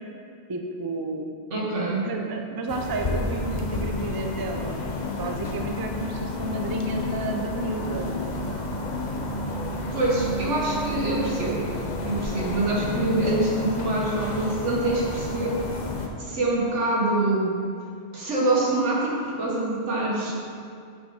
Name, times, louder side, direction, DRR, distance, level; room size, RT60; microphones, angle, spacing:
voice 1, 0.5-1.4 2.0-4.9 5.2-9.0, right 2 dB, 30° right, 3 dB, 0.4 m, -32 dB
voice 2, 1.5-2.1 9.9-11.7 12.1-15.6 16.2-17.6 18.1-20.3, right 2 dB, 90° right, -3 dB, 1.8 m, -25 dB
sound 1, 2.7-16.1, left 2 dB, 45° left, 0.8 m, -30 dB
8.1 x 6.2 x 4.2 m, 2.2 s
omnidirectional pair, 1.2 m